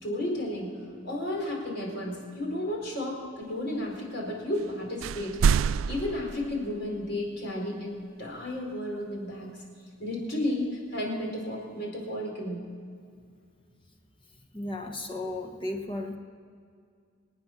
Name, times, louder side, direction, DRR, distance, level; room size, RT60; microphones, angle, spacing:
voice 1, 0.0-9.6 10.0-12.6, left 1 dB, 60° left, -1 dB, 4.5 m, -33 dB
sound 1, 4.5-4.7 5.0-7.1, right 6 dB, 85° right, 0.3 m, -27 dB
voice 2, 14.5-16.2, left 2 dB, 25° left, 3 dB, 1.3 m, -34 dB
25.5 x 9.4 x 6.0 m, 2.2 s
head